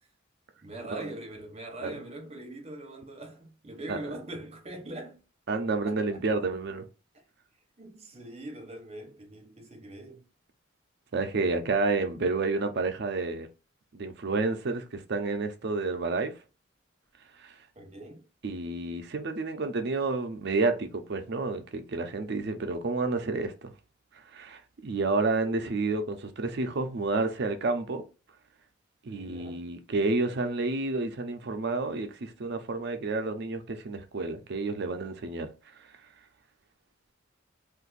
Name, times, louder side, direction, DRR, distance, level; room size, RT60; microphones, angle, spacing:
voice 1, 0.6-5.2 5.8-6.2 7.8-10.3 17.8-18.2 29.2-29.6, right 1 dB, 30° right, 0.9 m, -42 dB
voice 2, 5.5-6.8 11.1-13.5 13.9-16.3 17.4-17.5 18.4-23.7 24.3-28.0 29.0-35.5, right 3 dB, 55° right, 0.5 m, -30 dB
2.5 x 2.5 x 3.9 m
head